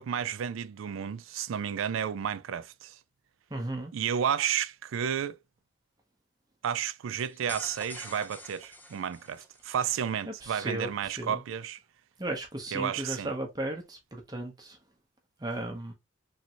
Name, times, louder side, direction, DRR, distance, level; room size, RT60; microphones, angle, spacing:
voice 1, 0.0-3.0 3.9-5.4 6.6-11.8 12.7-13.3, right 8 dB, 85° right, 0.4 m, -32 dB
voice 2, 3.5-3.9 10.3-11.4 12.2-14.8 15.4-15.9, right 1 dB, 20° right, 0.7 m, -35 dB
sound 1, 7.2-9.7, left 1 dB, 10° left, 0.3 m, -46 dB
3.2 x 2.6 x 2.8 m
head